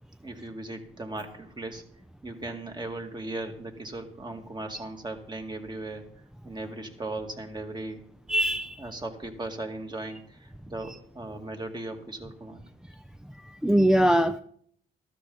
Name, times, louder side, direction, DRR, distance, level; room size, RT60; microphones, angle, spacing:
voice 1, 0.2-1.8 2.2-6.0 6.4-8.0 8.8-12.6, right 2 dB, 20° right, 4 dB, 2.2 m, -37 dB
voice 2, 8.3-8.8 13.6-14.4, equal, 5° right, 8 dB, 0.5 m, -21 dB
14.0 x 13.0 x 4.0 m, 0.64 s
cardioid pair, 90°, 20 cm